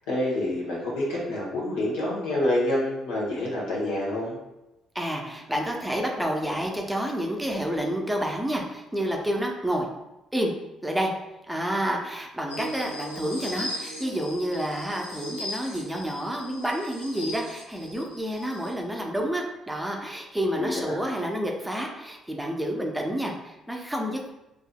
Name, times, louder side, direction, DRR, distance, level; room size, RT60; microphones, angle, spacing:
voice 1, 0.1-4.4 20.5-21.0, left 1 dB, 75° left, -5 dB, 1.0 m, -27 dB
voice 2, 4.9-9.9 10.3-10.5 10.8-11.1 11.5-24.3, equal, 10° right, 0 dB, 0.7 m, -29 dB
sound 1, 12.5-18.7, equal, 90° left, 0.5 m, -38 dB
4.7 x 2.7 x 2.3 m, 0.95 s
hypercardioid pair, 45°, 0 cm